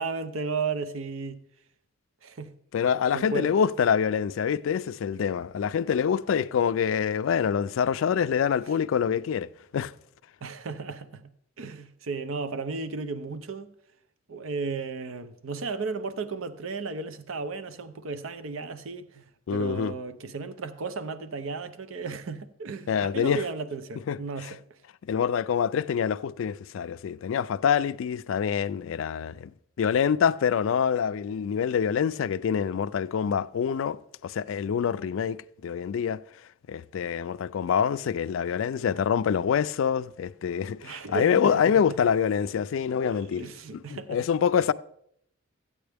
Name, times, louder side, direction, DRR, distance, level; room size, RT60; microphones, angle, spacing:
voice 1, 0.0-1.4 2.2-2.5 3.1-3.6 10.4-11.2 11.6-13.7 14.3-24.6 40.8-41.5 43.0-44.2, right 4 dB, 75° right, 0.6 m, -34 dB
voice 2, 2.7-9.9 19.5-19.9 22.9-23.4 24.1-24.5 25.0-29.5 29.8-36.2 36.7-43.4 43.7-44.7, left 7 dB, 70° left, 0.3 m, -26 dB
13.5 x 8.6 x 3.4 m
head